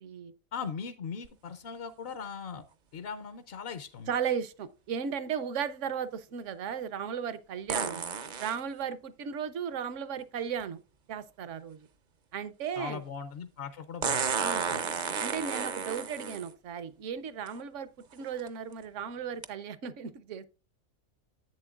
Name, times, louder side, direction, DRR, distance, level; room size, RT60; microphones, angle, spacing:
voice 1, 0.0-0.3 4.1-8.0 8.4-10.8 11.1-11.9 12.3-13.0 14.4-20.5, right 7 dB, 70° right, 1.0 m, -36 dB
voice 2, 0.5-2.6 2.9-4.1 12.8-14.8, left 6 dB, 60° left, 0.7 m, -39 dB
sound 1, 1.2-1.3 7.7-8.6 10.6-10.7 14.0-16.5 17.5-17.6 18.2-18.5 19.4-19.5, right 6 dB, 50° right, 0.6 m, -32 dB
10.5 x 8.1 x 2.4 m
omnidirectional pair, 1.4 m